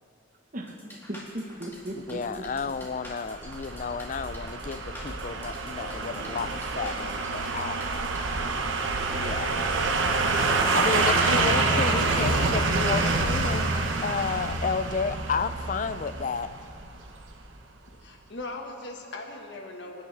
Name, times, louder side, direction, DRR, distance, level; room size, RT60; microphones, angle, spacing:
voice 1, 0.5-2.4 8.3-8.6, right 1 dB, 45° right, 2 dB, 1.3 m, -38 dB
sound 1, 0.7-8.2, left 1 dB, 10° left, 2.1 m, -47 dB
voice 2, 1.9-7.8 9.1-9.6 10.7-13.7 14.0-16.5, left 5 dB, 40° left, 13 dB, 0.4 m, -32 dB
sound 2, 2.4-17.3 17.6-17.7, right 3 dB, 85° right, 1.1 m, -27 dB
voice 3, 17.9-20.0, left 2 dB, 65° left, 2 dB, 1.6 m, -39 dB
24.5 x 10.0 x 3.4 m, 2.5 s
head